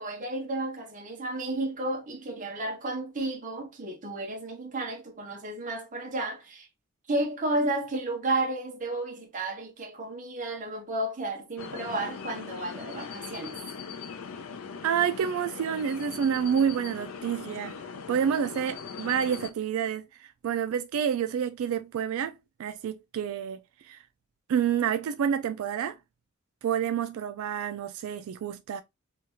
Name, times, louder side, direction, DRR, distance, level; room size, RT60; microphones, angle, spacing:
voice 1, 0.0-6.7 7.1-13.6, right 2 dB, 40° right, 0.7 m, -32 dB
sound 1, 11.6-19.5, left 6 dB, 85° left, 0.5 m, -40 dB
voice 2, 14.8-17.8 18.1-20.1 20.4-22.3 22.6-23.6 23.9-24.0 24.5-26.0 26.6-28.8, right 8 dB, 85° right, 0.3 m, -28 dB
2.8 x 2.3 x 2.8 m
head